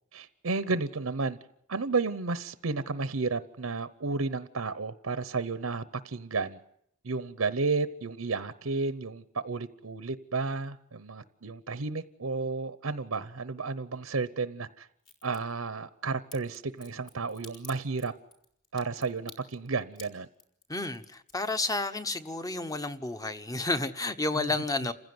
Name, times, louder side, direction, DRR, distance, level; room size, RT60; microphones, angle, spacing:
voice 1, 0.1-1.4 1.7-6.6 7.0-14.9 15.2-18.1 18.7-20.3 24.3-24.5 24.8-24.9, right 4 dB, 85° right, 0.9 m, -32 dB
Crack, 15.0-15.4 16.3-22.5 22.9-23.5 23.8-23.9, left 4 dB, 55° left, 4.5 m, -51 dB
voice 2, 20.7-24.9, left 2 dB, 15° left, 1.0 m, -31 dB
29.0 x 16.0 x 9.5 m
head